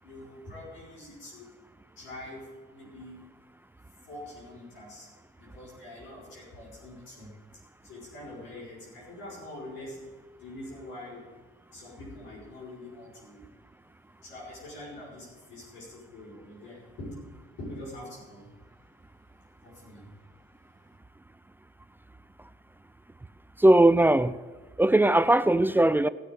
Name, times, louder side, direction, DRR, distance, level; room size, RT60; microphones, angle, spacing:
voice 1, 0.0-1.6 2.0-3.3 4.0-5.1 5.4-7.3 7.8-10.0 10.3-11.2 11.7-13.5 14.2-17.2 17.6-18.6 19.6-20.1, left 1 dB, 75° left, 5.9 m, -44 dB
voice 2, 23.6-24.4 24.8-26.1, right 1 dB, 10° right, 0.4 m, -19 dB
17.0 x 6.7 x 8.5 m
cardioid pair, 90°, 20 cm